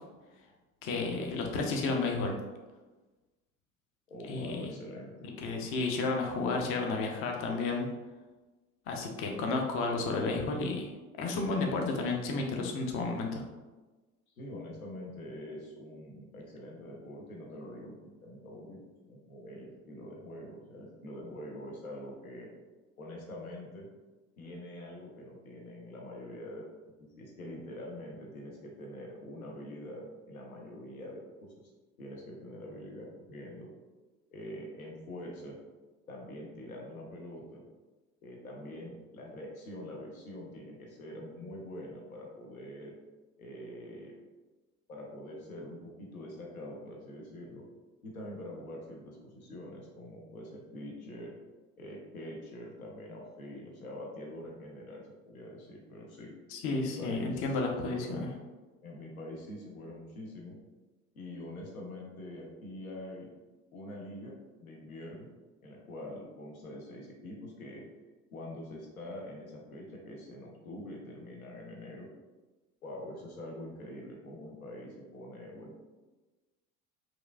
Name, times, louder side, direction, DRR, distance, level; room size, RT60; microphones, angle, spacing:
voice 1, 0.8-2.3 4.3-4.7 5.4-7.9 8.9-10.9 11.2-13.4 56.5-58.3, left 3 dB, 35° left, 2 dB, 0.4 m, -32 dB
voice 2, 4.1-5.3 14.4-22.5 23.0-23.9 24.4-31.6 32.0-33.7 34.3-35.6 36.1-37.6 38.2-42.9 43.4-44.2 44.9-47.7 48.0-51.3 51.8-56.3 56.7-57.5 58.0-58.4 58.8-60.6 61.1-63.3 63.7-65.3 65.6-67.8 68.3-72.1 72.8-75.8, left 1 dB, 85° left, -1 dB, 0.7 m, -45 dB
2.9 x 2.5 x 2.3 m, 1.2 s
figure-of-eight pair, 65°, 41 cm